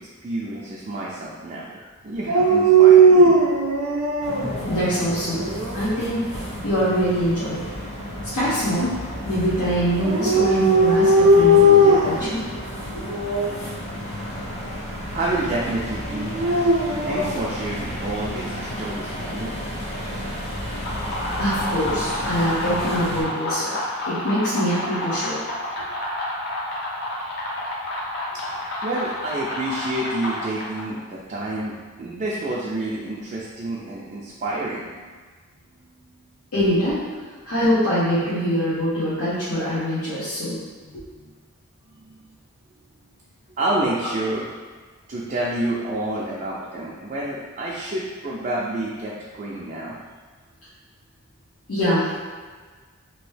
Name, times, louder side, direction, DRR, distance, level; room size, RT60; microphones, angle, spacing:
voice 1, 0.0-1.7 2.0-3.4 15.1-16.6 17.0-19.5 28.3-35.1 40.8-41.3 42.0-42.3 43.6-44.5 45.1-50.0, right 2 dB, 35° right, -5 dB, 0.4 m, -29 dB
Dog, 2.3-4.5 5.1-5.9 10.0-12.3 13.1-13.5 16.1-17.4, right 1 dB, 90° right, 0.5 m, -17 dB
sound 1, 4.2-23.2, equal, 30° left, 1.0 m, -32 dB
voice 2, 4.7-5.4 5.7-6.3 6.6-7.6 8.3-9.0 9.3-12.4 12.9-13.0 21.4-23.8 24.1-25.4 36.5-37.0 37.5-40.6 40.9-41.0 51.7-52.1, equal, 75° left, -12 dB, 0.9 m, -23 dB
sound 2, 20.7-31.0, left 1 dB, 50° left, 0.6 m, -29 dB
3.0 x 2.7 x 3.2 m, 1.5 s
head